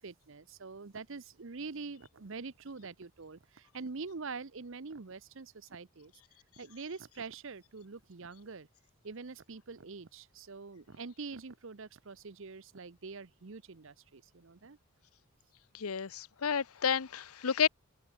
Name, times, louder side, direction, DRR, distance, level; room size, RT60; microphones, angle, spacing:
voice 1, 0.0-6.1 6.6-8.7 9.0-14.8, right 4 dB, 60° right, 0.8 m, -45 dB
voice 2, 15.7-17.7, left 7 dB, 85° left, 0.8 m, -31 dB
open air
head